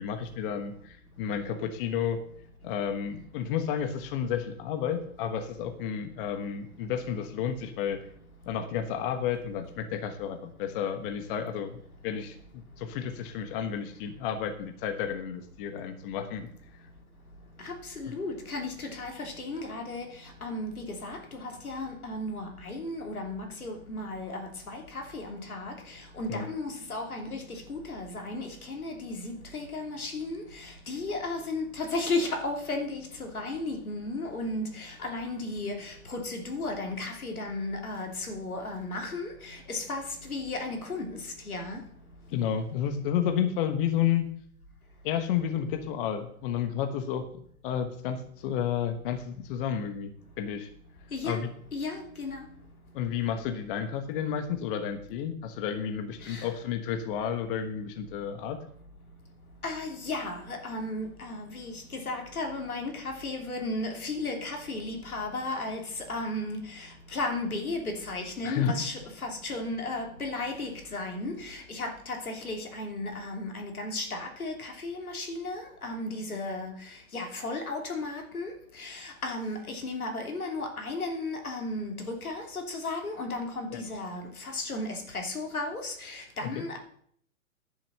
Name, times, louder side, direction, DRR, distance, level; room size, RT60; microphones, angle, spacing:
voice 1, 0.0-2.2 2.6-8.0 8.5-16.5 26.3-26.5 42.3-44.2 45.0-47.2 47.6-50.1 50.4-50.7 51.2-51.5 52.9-58.6 68.4-68.8 83.7-83.8 86.6-86.7, left 8 dB, 40° left, 1.3 m, -31 dB
voice 2, 17.6-20.1 20.4-41.2 41.4-41.8 51.1-51.4 51.7-52.4 56.2-56.5 59.6-86.8, left 2 dB, 90° left, 3.1 m, -35 dB
10.5 x 7.3 x 6.8 m
hypercardioid pair, 125°, 42 cm